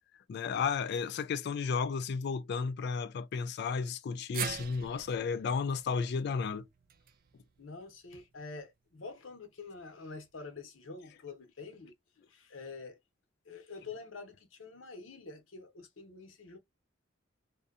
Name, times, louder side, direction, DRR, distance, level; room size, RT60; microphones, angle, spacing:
voice 1, 0.3-6.7, left 5 dB, 60° left, 0.3 m, -33 dB
sound 1, 4.3-8.6 9.0-9.1 10.2-10.3, right 9 dB, 50° right, 0.3 m, -44 dB
voice 2, 7.6-11.9 12.3-13.0 13.4-16.6, left 4 dB, 80° left, 0.8 m, -47 dB
2.7 x 2.2 x 2.4 m
head